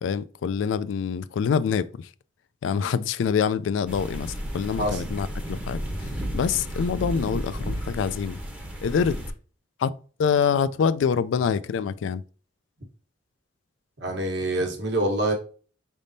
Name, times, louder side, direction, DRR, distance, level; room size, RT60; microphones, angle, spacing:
voice 1, 0.0-2.1 2.6-8.4 8.8-9.2 9.8-9.9 10.2-12.2, left 6 dB, 75° left, 0.3 m, -25 dB
sound 1, 3.9-9.3, equal, 5° right, 0.7 m, -33 dB
voice 2, 14.0-15.3, right 1 dB, 65° right, 1.2 m, -25 dB
5.1 x 3.5 x 2.6 m
head